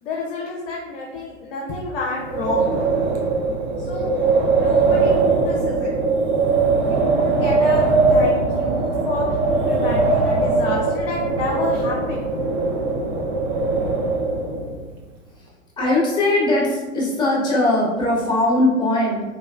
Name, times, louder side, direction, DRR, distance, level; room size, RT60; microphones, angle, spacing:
voice 1, 0.0-2.8 3.8-4.1 4.5-5.9 6.8-9.3 9.6-12.3, left 2 dB, 45° left, -2 dB, 0.6 m, -29 dB
Wind, 2.2-14.8, right 3 dB, 25° right, 0.5 m, -20 dB
voice 2, 15.8-19.2, left 1 dB, 10° left, -5 dB, 1.0 m, -20 dB
3.3 x 3.0 x 2.4 m, 1.2 s
figure-of-eight pair, 100°, 38 cm